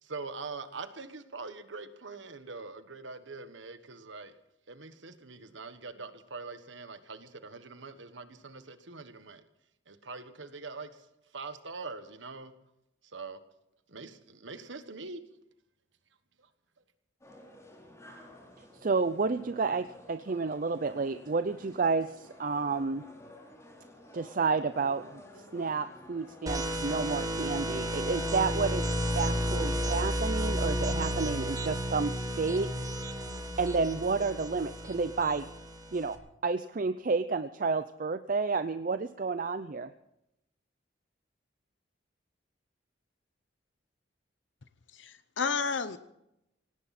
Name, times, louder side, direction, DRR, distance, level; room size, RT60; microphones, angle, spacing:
voice 1, 0.0-4.3 4.7-9.4 9.9-11.0 11.3-12.5 13.1-13.4 13.9-15.2, right 4 dB, 75° right, 10 dB, 1.4 m, -43 dB
sound 1, 17.2-30.9, left 1 dB, 15° left, 3.7 m, -53 dB
voice 2, 18.8-23.0 24.1-28.9 29.2-33.0 33.6-35.5 35.9-36.2 36.4-39.9, right 4 dB, 45° right, 11 dB, 0.5 m, -30 dB
sound 2, 26.5-36.1, equal, 20° right, 1.6 m, -32 dB
voice 3, 44.9-46.0, left 5 dB, 75° left, 12 dB, 0.8 m, -31 dB
17.5 x 17.5 x 4.3 m, 0.84 s
head